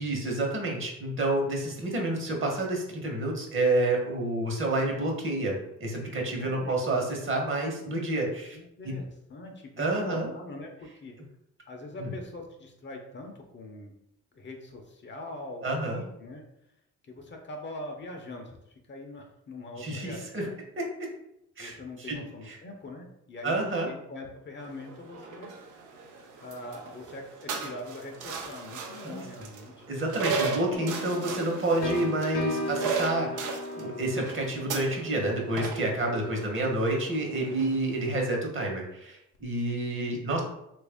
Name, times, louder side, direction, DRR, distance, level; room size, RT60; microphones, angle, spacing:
voice 1, 0.0-5.5 5.8-8.6 8.8-9.0 9.8-10.3 12.0-12.2 15.6-16.0 19.8-20.5 20.8-21.1 21.6-21.7 22.1-22.2 22.5-22.6 23.4-23.9 29.0-29.2 29.9-40.4, right 2 dB, 40° right, 0 dB, 1.1 m, -29 dB
voice 2, 6.4-6.8 8.5-11.2 11.7-13.9 14.3-16.4 17.0-20.6 21.6-25.5 26.4-29.9 31.9-32.2 36.2-36.6, left 2 dB, 40° left, 3 dB, 0.6 m, -42 dB
sound 1, 24.6-38.1, right 4 dB, 85° right, 0.6 m, -37 dB
sound 2, 30.7-36.4, left 1 dB, 80° left, 0.8 m, -37 dB
3.2 x 2.5 x 3.5 m, 0.80 s
cardioid pair, 90°, 30 cm